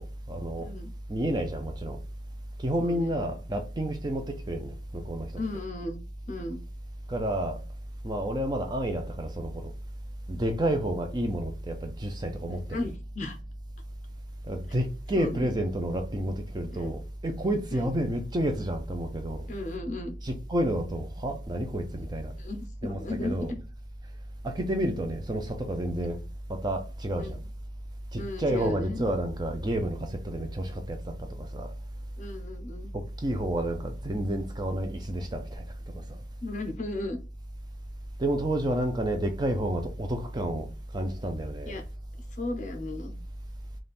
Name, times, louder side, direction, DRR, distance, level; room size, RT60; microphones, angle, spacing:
voice 1, 0.0-0.7 1.1-2.0 2.6-5.3 7.1-7.6 8.0-9.7 10.3-12.8 14.5-19.5 20.2-22.3 22.8-23.5 24.4-26.2 26.5-27.4 28.1-31.7 32.9-35.6 35.9-36.2 38.2-41.8, right 1 dB, 25° right, 0.5 m, -30 dB
voice 2, 0.6-0.9 2.8-3.1 5.4-6.0 6.3-6.6 12.7-13.4 15.2-15.5 16.7-16.9 17.7-17.9 19.5-20.2 22.0-22.1 22.4-23.6 27.2-27.4 28.2-29.1 32.2-32.9 36.4-37.2 41.6-41.8 42.3-43.2, left 2 dB, 45° left, 0.7 m, -35 dB
3.4 x 2.5 x 4.1 m
head